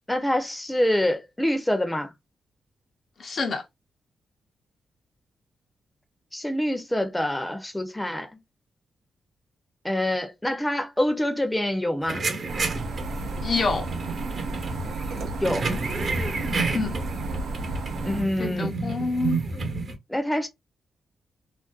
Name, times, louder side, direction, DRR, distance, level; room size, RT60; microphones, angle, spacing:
voice 1, 0.1-2.1 6.3-8.3 9.8-12.3 15.4-15.6 18.1-18.7 20.1-20.5, left 1 dB, 10° left, 0.6 m, -26 dB
voice 2, 3.2-3.6 13.4-13.9 16.7-17.0 18.4-19.4, left 4 dB, 55° left, 0.6 m, -27 dB
sound 1, 12.1-20.0, right 3 dB, 60° right, 0.9 m, -30 dB
sound 2, 12.5-18.2, right 3 dB, 80° right, 0.5 m, -33 dB
2.5 x 2.1 x 2.3 m
cardioid pair, 80°, 0 cm